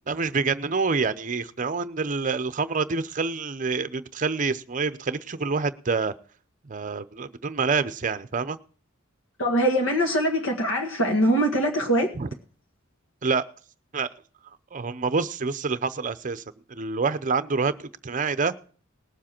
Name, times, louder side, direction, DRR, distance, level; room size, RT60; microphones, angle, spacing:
voice 1, 0.1-6.1 6.6-8.6 12.1-12.3 13.2-13.4 13.9-14.1 14.7-16.4 16.7-18.5, right 4 dB, 40° right, 0.7 m, -27 dB
voice 2, 9.4-12.1, equal, 65° left, 1.8 m, -22 dB
19.5 x 7.4 x 4.4 m
head